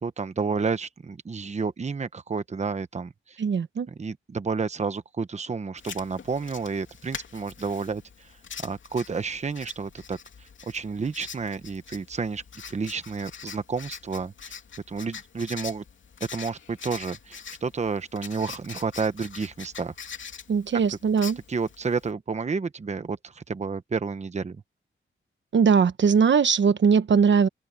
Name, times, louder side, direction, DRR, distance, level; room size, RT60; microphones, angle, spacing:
voice 1, 0.0-3.4 4.0-8.3 8.6-12.4 12.7-14.5 14.9-15.8 16.3-19.9 20.9-21.0 21.5-24.6, right 5 dB, 35° right, 1.0 m, -30 dB
voice 2, 3.4-3.9 20.5-21.4 25.5-27.5, right 6 dB, 65° right, 1.1 m, -20 dB
Writing, 5.8-22.1, left 6 dB, 70° left, 2.9 m, -43 dB
open air
wide cardioid pair, 135°, 21 cm